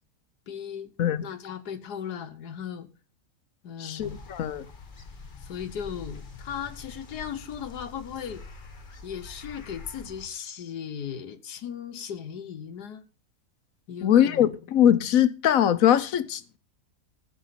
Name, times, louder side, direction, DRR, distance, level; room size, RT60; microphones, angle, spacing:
voice 1, 0.5-0.9 1.2-2.9 3.6-4.2 5.4-8.4 9.0-13.0 13.9-14.7, left 8 dB, 90° left, 1.6 m, -37 dB
voice 2, 3.8-4.7 14.0-16.4, left 10 dB, 65° left, 1.1 m, -21 dB
sound 1, 4.0-10.3, left 3 dB, 35° left, 1.3 m, -45 dB
14.5 x 6.7 x 5.7 m
omnidirectional pair, 1.7 m